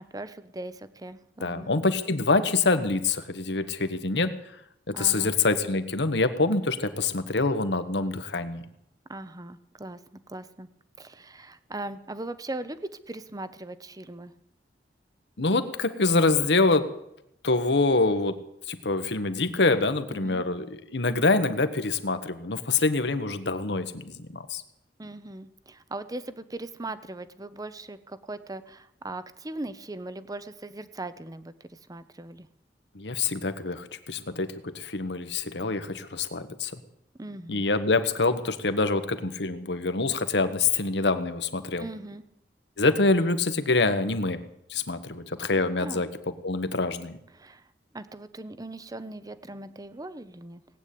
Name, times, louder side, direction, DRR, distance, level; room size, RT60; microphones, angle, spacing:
voice 1, 0.0-1.7 4.9-5.4 9.1-10.0 10.3-10.7 11.0-14.3 20.1-20.4 25.0-32.5 37.2-37.6 41.8-42.2 45.8-46.0 47.3-47.6 47.9-50.6, right 2 dB, 20° right, 13 dB, 0.8 m, -39 dB
voice 2, 1.4-4.3 4.9-8.6 15.4-16.9 17.4-24.6 32.9-36.8 37.5-41.9 42.8-44.4 44.7-47.2, left 3 dB, 75° left, 10 dB, 1.3 m, -25 dB
18.5 x 9.2 x 8.5 m, 0.80 s
head